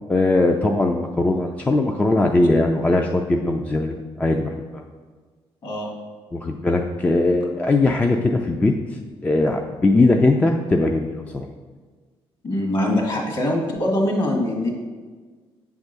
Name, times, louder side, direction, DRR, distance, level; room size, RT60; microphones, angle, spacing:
voice 1, 0.1-4.8 6.3-8.7 9.2-11.5, left 2 dB, 15° left, 3 dB, 0.3 m, -20 dB
voice 2, 5.6-5.9 12.4-14.7, left 1 dB, 45° left, -1 dB, 1.8 m, -23 dB
8.0 x 3.5 x 6.6 m, 1.4 s
cardioid pair, 160°, 10 cm